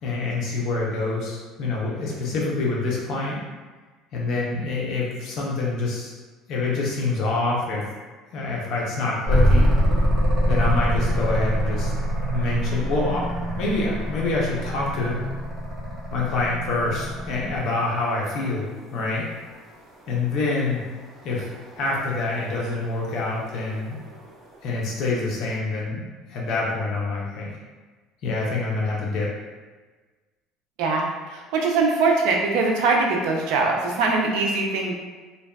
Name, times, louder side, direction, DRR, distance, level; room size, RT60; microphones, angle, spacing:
voice 1, 0.0-3.4 4.1-6.1 6.5-7.8 8.3-9.8 10.5-11.9 12.3-13.3 13.6-15.2 16.1-19.3 20.1-20.8 21.2-21.5 21.8-24.0 24.6-26.0 26.3-27.6 28.2-29.3, left 3 dB, 55° left, -4 dB, 0.6 m, -26 dB
sound 1, 9.2-17.8 20.1-24.6, equal, 25° right, 0.9 m, -25 dB
voice 2, 30.8-34.9, right 3 dB, 75° right, 1 dB, 0.4 m, -22 dB
2.6 x 2.2 x 2.3 m, 1.3 s
cardioid pair, 135°, 0 cm